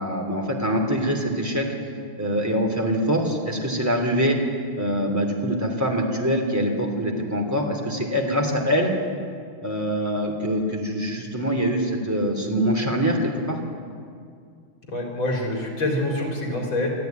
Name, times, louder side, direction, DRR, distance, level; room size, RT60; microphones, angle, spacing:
voice 1, 0.0-1.7 2.2-4.4 4.7-8.9 9.6-13.6, equal, 10° right, 1 dB, 2.8 m, -24 dB
voice 2, 14.9-16.9, left 1 dB, 75° left, -1 dB, 4.6 m, -26 dB
23.5 x 13.5 x 9.4 m, 2.2 s
omnidirectional pair, 2.2 m